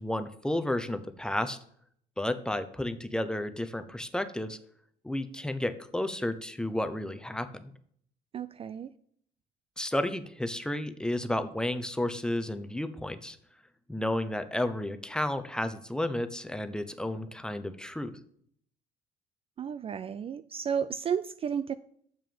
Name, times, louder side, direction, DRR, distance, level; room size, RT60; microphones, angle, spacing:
voice 1, 0.0-1.6 2.2-4.6 5.0-7.7 9.8-13.4 13.9-18.2, left 1 dB, 5° left, 10 dB, 0.7 m, -32 dB
voice 2, 8.3-8.9 19.6-21.7, right 7 dB, 35° right, 14 dB, 0.4 m, -32 dB
7.0 x 6.3 x 7.0 m, 0.64 s
cardioid pair, 110°, 17 cm